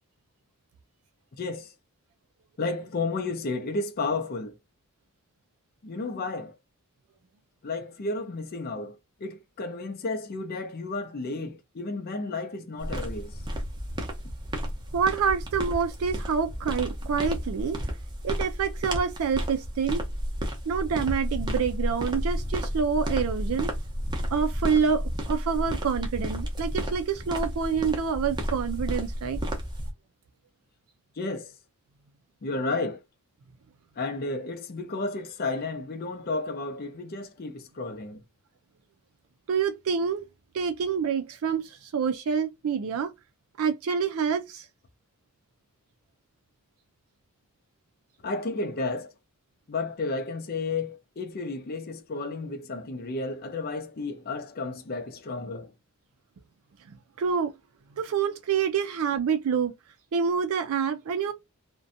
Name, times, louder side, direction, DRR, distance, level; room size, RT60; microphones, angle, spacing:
voice 1, 1.4-1.7 2.6-4.6 5.8-6.5 7.6-13.4 31.2-31.5 32.4-33.0 34.0-38.2 48.2-49.1 49.7-55.7, left 3 dB, 45° left, 0.5 m, -32 dB
sound 1, 12.8-29.9, equal, 20° right, 0.6 m, -32 dB
voice 2, 14.9-17.8 18.2-20.0 20.7-23.7 24.3-25.0 25.3-29.4 39.5-40.3 40.5-43.1 43.6-44.7 57.2-57.5 58.0-59.7 60.1-61.3, right 6 dB, 75° right, 0.4 m, -27 dB
2.5 x 2.2 x 2.5 m
head